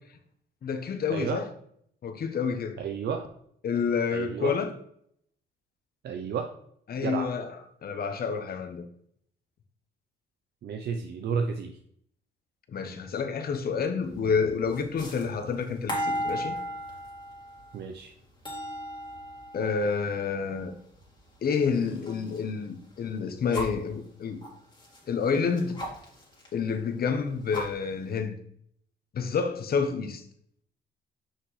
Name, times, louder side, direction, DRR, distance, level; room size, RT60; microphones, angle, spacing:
voice 1, 0.6-1.5 2.0-2.8 3.6-4.7 6.9-7.5 7.8-8.9 12.7-16.6 19.5-20.7 21.4-24.4 25.1-25.7 26.5-28.3 29.1-30.2, left 5 dB, 50° left, 0.9 m, -29 dB
voice 2, 2.8-3.3 4.1-4.6 6.0-6.5 7.0-7.3 10.6-11.8 17.7-18.1, right 6 dB, 60° right, 0.6 m, -32 dB
sound 1, 14.0-22.5 22.8-23.9 24.4-26.5 26.8-26.9 27.2-28.1, equal, 25° left, 2.2 m, -37 dB
5.8 x 5.6 x 3.2 m
cardioid pair, 90°, 20 cm